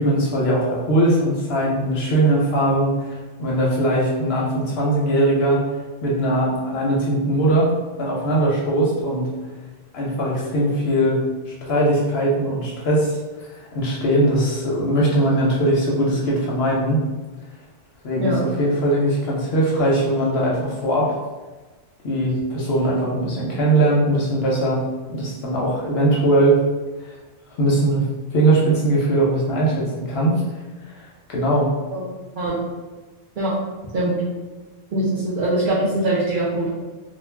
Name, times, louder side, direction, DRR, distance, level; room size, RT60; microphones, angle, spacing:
voice 1, 0.0-5.6 6.0-7.7 8.0-9.3 9.9-17.0 18.0-21.1 22.0-24.8 25.1-26.6 27.0-27.1 27.6-28.1 28.3-30.4 30.8-31.7, right 1 dB, 60° left, -4 dB, 0.7 m, -20 dB
voice 2, 34.9-36.7, right 1 dB, 55° right, -8 dB, 0.6 m, -22 dB
2.3 x 2.1 x 3.2 m, 1.3 s
omnidirectional pair, 1.3 m